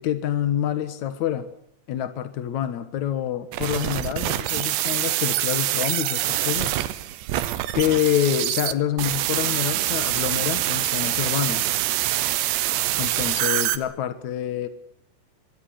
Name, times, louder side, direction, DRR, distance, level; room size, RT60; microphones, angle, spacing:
voice 1, 0.0-1.5 1.9-6.8 7.7-11.7 13.0-14.7, left 11 dB, 70° left, 11 dB, 1.8 m, -26 dB
sound 1, 3.5-13.8, right 14 dB, 75° right, 3.1 m, -25 dB
24.5 x 23.5 x 6.4 m, 0.71 s
omnidirectional pair, 5.4 m